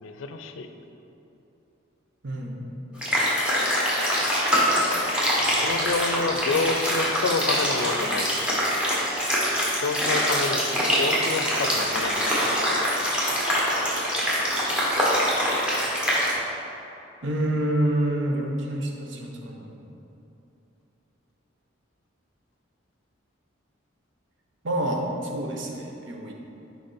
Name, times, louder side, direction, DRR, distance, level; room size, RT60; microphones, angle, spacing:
voice 1, 0.0-0.7 5.6-8.3 9.8-12.5, left 3 dB, 75° left, 7 dB, 0.5 m, -28 dB
voice 2, 2.2-2.7 17.2-19.9 24.6-26.3, right 1 dB, 60° right, 1 dB, 0.8 m, -28 dB
sound 1, 3.0-16.3, equal, 5° right, 1.2 m, -24 dB
6.5 x 5.0 x 4.2 m, 2.9 s
head